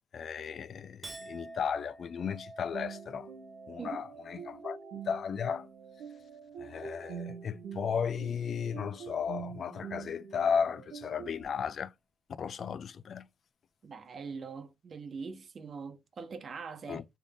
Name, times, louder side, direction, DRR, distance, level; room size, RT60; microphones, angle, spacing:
voice 1, 0.1-3.3 3.7-4.8 5.1-5.7 6.6-11.9 12.4-13.2 16.9-17.0, left 7 dB, 55° left, 0.3 m, -34 dB
Chink clink, 1.0-7.6 8.0-8.5, right 2 dB, 20° right, 1.0 m, -51 dB
sound 1, 2.7-11.4, right 7 dB, 85° right, 0.9 m, -45 dB
voice 2, 13.8-17.1, right 5 dB, 45° right, 1.0 m, -42 dB
3.6 x 3.4 x 3.6 m
cardioid pair, 90°, 0 cm